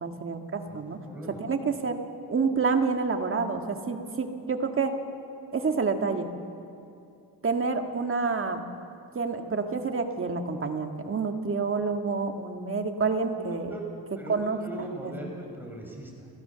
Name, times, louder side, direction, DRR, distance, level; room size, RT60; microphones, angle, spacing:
voice 1, 0.0-1.0 1.4-2.0 2.3-4.9 5.5-6.3 7.4-8.6 9.1-13.7 14.3-14.6 15.0-15.1, right 4 dB, 30° right, 5 dB, 1.8 m, -28 dB
voice 2, 0.7-1.4 13.3-13.8 14.2-16.3, right 1 dB, 5° right, -1 dB, 5.5 m, -41 dB
29.5 x 14.0 x 6.9 m, 2.5 s
cardioid pair, 105°, 39 cm